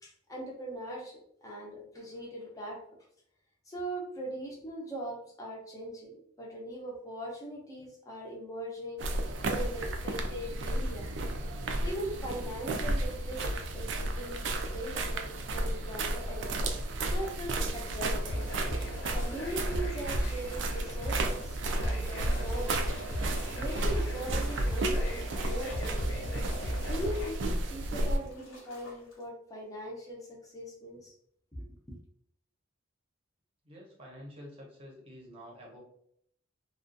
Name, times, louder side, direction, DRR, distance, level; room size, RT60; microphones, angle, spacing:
voice 1, 0.0-2.8 3.7-9.0 9.4-11.1 11.8-16.5 17.1-18.5 19.1-22.7 23.5-26.3 26.8-31.1 31.5-32.0, right 1 dB, 15° left, -2 dB, 0.6 m, -40 dB
sound 1, 9.0-28.2, right 1 dB, 65° right, 0.3 m, -33 dB
sound 2, 18.2-27.3, right 1 dB, 70° left, 0.6 m, -36 dB
sound 3, 21.8-29.2, left 1 dB, 90° left, 1.1 m, -52 dB
voice 2, 33.6-35.8, equal, 30° right, -3 dB, 0.7 m, -48 dB
2.4 x 2.2 x 2.5 m, 0.70 s
head